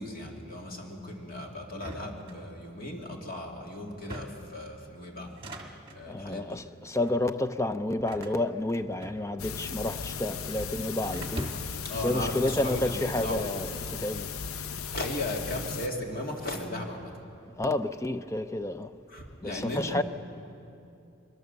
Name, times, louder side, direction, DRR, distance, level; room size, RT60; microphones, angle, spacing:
voice 1, 0.0-5.3 5.9-6.6 11.9-13.5 14.9-17.2 19.1-20.0, left 1 dB, 40° left, 2.4 m, -36 dB
sound 1, 1.7-2.9 3.9-4.6 5.2-6.1 6.9-7.2 8.1-9.6 9.9-10.6 11.1-11.9, right 1 dB, 25° right, 1.5 m, -42 dB
voice 2, 6.1-11.5 12.0-14.3 17.6-18.9 19.4-20.0, left 1 dB, 15° left, 0.5 m, -30 dB
sound 2, 9.4-15.9, left 6 dB, 85° left, 0.7 m, -36 dB
22.5 x 21.5 x 6.8 m
head